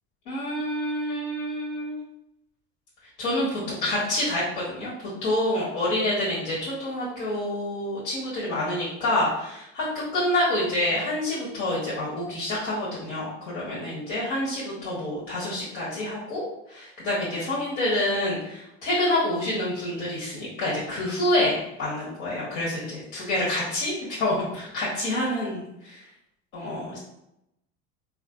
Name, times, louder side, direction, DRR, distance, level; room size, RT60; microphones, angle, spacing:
voice 1, 0.2-2.0 3.2-4.9 5.2-16.4 16.7-26.0 26.5-27.0, left 1 dB, 75° left, -7 dB, 1.2 m, -27 dB
3.5 x 2.5 x 2.4 m, 0.82 s
supercardioid pair, 115°, 34 cm